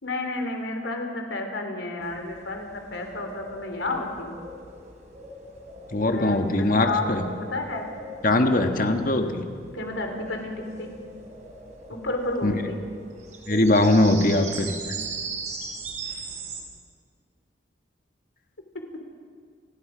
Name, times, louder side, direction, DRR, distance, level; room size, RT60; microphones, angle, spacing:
voice 1, 0.0-4.3 5.9-7.9 9.7-11.0 11.9-12.8, left 2 dB, 80° left, 4 dB, 3.2 m, -31 dB
sound 1, 2.0-16.6, right 3 dB, 40° right, 3.4 m, -40 dB
voice 2, 5.9-7.3 8.2-9.4 12.4-12.5 13.5-14.7, left 1 dB, 45° left, 5 dB, 1.5 m, -21 dB
28.5 x 19.0 x 5.1 m, 2.1 s
head